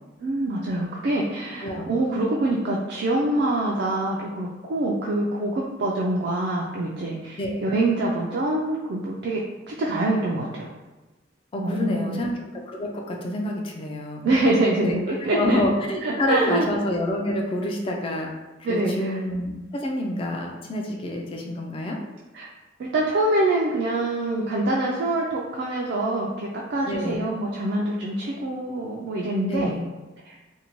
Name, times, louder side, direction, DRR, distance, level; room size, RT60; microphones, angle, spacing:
voice 1, 0.2-9.4 9.7-10.7 11.6-12.2 14.2-15.6 16.0-16.7 18.6-19.2 22.3-22.5 22.8-29.7 30.3-30.4, right 2 dB, 60° right, -3 dB, 0.3 m, -25 dB
voice 2, 11.5-14.2 14.8-15.0 15.4-18.3 18.7-22.0 26.8-27.3 29.5-29.9, left 1 dB, 30° left, 1 dB, 0.3 m, -27 dB
2.6 x 2.1 x 2.9 m, 1.1 s
head